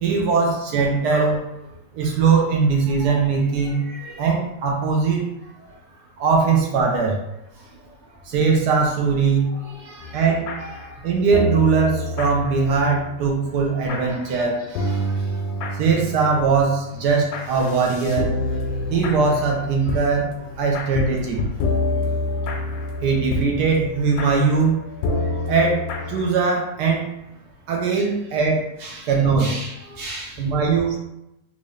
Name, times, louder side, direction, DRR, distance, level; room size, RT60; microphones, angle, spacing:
voice 1, 0.0-1.5 1.9-3.8 4.2-5.3 6.2-7.2 8.3-9.5 10.1-10.5 11.0-14.6 15.8-18.3 18.9-21.4 23.0-24.8 25.5-27.1 27.7-28.7 29.1-29.6 30.4-31.0, right 5 dB, 85° right, 0 dB, 1.3 m, -20 dB
voice 2, 4.0-4.3 9.8-10.2 14.3-14.4 14.8-15.0 18.5-18.6 28.8-29.1 29.4-30.4, right 2 dB, 50° right, -4 dB, 1.2 m, -36 dB
sound 1, 10.0-14.4 14.7-26.4, left 2 dB, 80° left, 1.1 m, -28 dB
3.6 x 2.7 x 3.2 m, 0.87 s
omnidirectional pair, 1.7 m